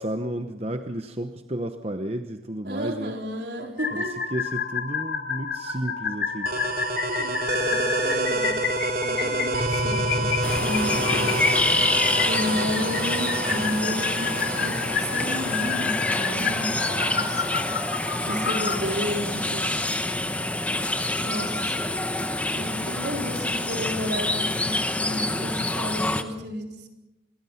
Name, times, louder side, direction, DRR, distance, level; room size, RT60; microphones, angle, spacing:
voice 1, 0.0-3.2 3.9-4.0 4.3-6.5 20.8-20.9, right 1 dB, 35° right, 7 dB, 0.9 m, -32 dB
voice 2, 2.6-4.3 7.1-8.6 9.0-11.5 12.2-17.4 18.2-19.8 21.2-21.8 22.5-26.9, equal, 70° right, 2 dB, 4.2 m, -32 dB
sound 1, 3.8-18.8, left 6 dB, 65° left, 2.6 m, -30 dB
sound 2, 6.5-17.8, right 2 dB, 55° right, 2.6 m, -29 dB
sound 3, 10.4-26.2, left 2 dB, 10° left, 1.1 m, -27 dB
26.5 x 22.0 x 5.8 m, 1.0 s
head